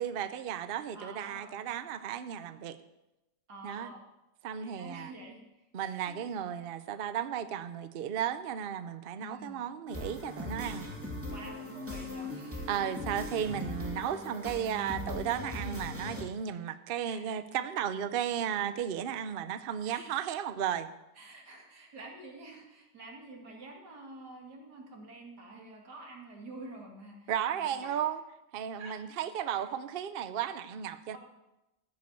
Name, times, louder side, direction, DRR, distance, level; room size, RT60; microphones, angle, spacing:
voice 1, 0.0-2.8 3.6-3.9 4.4-5.1 5.7-10.9 12.7-20.9 27.3-28.2 28.5-31.2, right 9 dB, 90° right, 11 dB, 0.5 m, -34 dB
voice 2, 0.9-1.6 3.5-4.0 4.6-5.4 5.8-6.2 9.2-9.6 11.3-12.7 16.5-16.6 17.0-17.2 19.9-20.1 21.2-27.3 27.6-28.0 28.8-28.9 29.5-29.6 31.1-31.2, right 2 dB, 65° right, 0 dB, 2.8 m, -48 dB
sound 1, 9.9-16.2, left 1 dB, 5° right, 2.4 m, -39 dB
14.5 x 5.3 x 8.1 m, 0.94 s
omnidirectional pair, 1.9 m